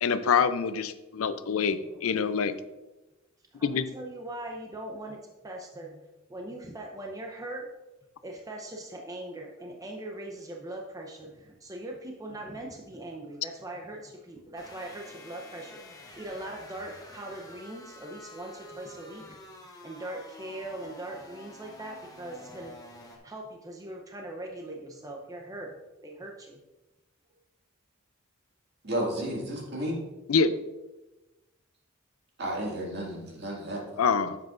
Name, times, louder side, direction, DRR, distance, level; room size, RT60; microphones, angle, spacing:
voice 1, 0.0-2.5 3.6-3.9 30.3-30.6 34.0-34.4, left 6 dB, 75° left, 12 dB, 0.5 m, -25 dB
voice 2, 3.5-5.2 5.4-6.0 6.3-7.7 8.2-19.4 19.8-22.7 23.2-26.6, right 1 dB, 15° right, 1 dB, 0.7 m, -41 dB
sound 1, 14.5-23.2, left 2 dB, 20° left, 1.0 m, -49 dB
voice 3, 28.8-30.0 32.4-34.0, right 1 dB, 55° right, -2 dB, 2.1 m, -32 dB
9.3 x 7.4 x 2.5 m, 1.1 s
head